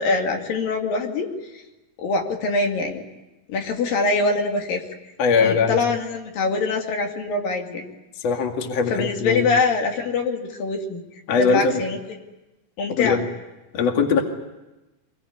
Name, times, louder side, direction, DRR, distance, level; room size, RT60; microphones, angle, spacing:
voice 1, 0.0-1.6 2.0-3.0 3.5-4.8 5.4-7.9 8.9-11.0 11.4-12.0 12.8-13.2, left 3 dB, 75° left, 2 dB, 4.1 m, -24 dB
voice 2, 5.2-5.8 8.2-9.4 11.3-11.8 13.0-13.2 13.7-14.2, left 5 dB, 50° left, 3 dB, 3.2 m, -20 dB
25.0 x 22.0 x 9.6 m, 1.0 s
omnidirectional pair, 4.1 m